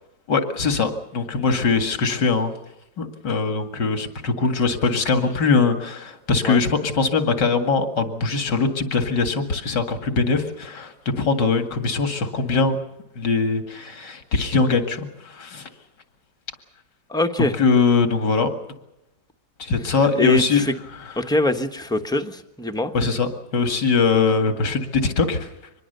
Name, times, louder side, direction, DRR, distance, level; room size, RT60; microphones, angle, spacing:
voice 1, 0.3-2.5 3.0-12.8 13.2-15.7 17.4-18.5 19.6-20.6 22.9-25.5, left 4 dB, 85° left, 7 dB, 2.7 m, -21 dB
voice 2, 17.1-17.5 20.2-20.7 21.2-22.9, left 2 dB, 5° left, 5 dB, 1.1 m, -22 dB
25.0 x 21.0 x 6.8 m, 0.85 s
omnidirectional pair, 1.8 m